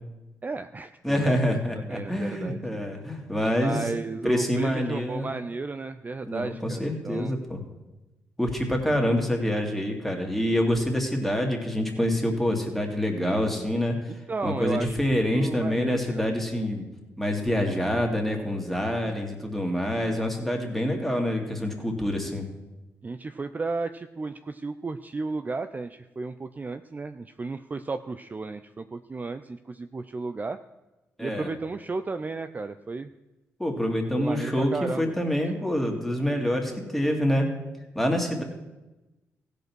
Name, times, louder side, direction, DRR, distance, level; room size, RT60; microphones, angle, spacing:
voice 1, 0.4-2.6 3.6-7.4 14.3-16.3 17.5-18.0 23.0-30.6 31.2-33.1 34.2-35.1, right 3 dB, 30° right, 10 dB, 0.5 m, -33 dB
voice 2, 1.0-3.8 4.2-5.3 6.3-7.6 8.4-14.1 14.4-16.8 17.2-22.4 31.2-31.5 33.6-37.5 37.9-38.4, left 1 dB, 5° left, 2 dB, 2.4 m, -26 dB
15.5 x 5.3 x 6.1 m, 1.1 s
supercardioid pair, 55°, 6 cm